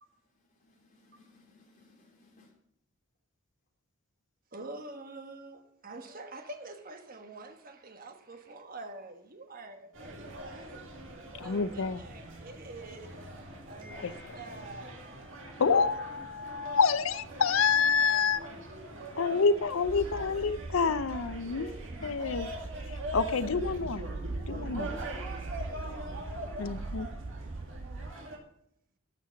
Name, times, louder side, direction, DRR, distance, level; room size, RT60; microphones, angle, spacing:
voice 1, 0.2-2.5 17.9-19.4 22.0-22.1, left 2 dB, 35° left, 3.1 m, -63 dB
voice 2, 4.5-10.7 11.4-13.3 13.7-15.4 21.4-22.2 24.3-26.0, right 2 dB, 40° right, 1.3 m, -47 dB
sound 1, 9.9-28.4, equal, 60° right, 2.2 m, -43 dB
voice 3, 11.4-12.0 14.0-14.1 15.6-18.4 19.2-21.7 22.0-22.5 22.9-24.0 24.4-24.9 26.6-27.1, left 5 dB, 70° left, 0.6 m, -28 dB
sound 2, 19.8-28.1, right 3 dB, 25° right, 0.3 m, -40 dB
13.0 x 5.8 x 7.0 m
head